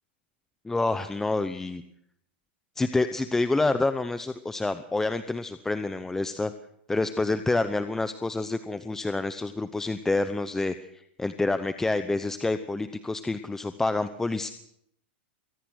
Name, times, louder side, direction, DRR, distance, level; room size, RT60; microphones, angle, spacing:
voice 1, 0.6-1.8 2.8-6.5 6.9-14.5, left 2 dB, 5° left, 11 dB, 0.8 m, -28 dB
23.5 x 17.5 x 6.4 m, 0.74 s
supercardioid pair, 140°, 6 cm